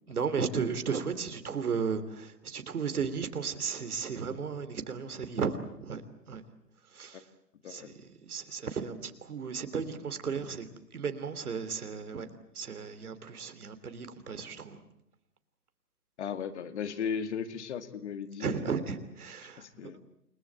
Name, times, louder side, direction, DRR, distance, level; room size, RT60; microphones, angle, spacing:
voice 1, 0.1-6.4 6.9-7.3 7.7-12.3 12.5-14.8 18.4-19.9, right 6 dB, 65° right, 10 dB, 3.1 m, -35 dB
voice 2, 16.2-18.6 19.6-20.0, left 7 dB, 45° left, 9 dB, 2.2 m, -36 dB
29.5 x 20.0 x 8.9 m, 0.78 s
figure-of-eight pair, 130°, 48 cm